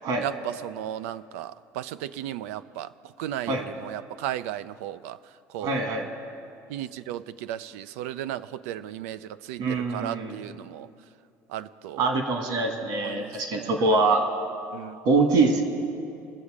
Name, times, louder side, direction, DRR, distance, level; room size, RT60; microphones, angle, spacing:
voice 1, 0.2-2.9 3.2-5.2 5.5-5.9 6.7-10.9 11.5-12.1 13.0-13.8 14.7-15.0, right 12 dB, 90° right, 15 dB, 0.4 m, -35 dB
voice 2, 5.6-6.1 9.6-10.4 12.0-14.2 15.1-15.6, right 3 dB, 70° right, 4 dB, 2.0 m, -24 dB
21.5 x 7.2 x 5.0 m, 2.5 s
supercardioid pair, 90°, 8 cm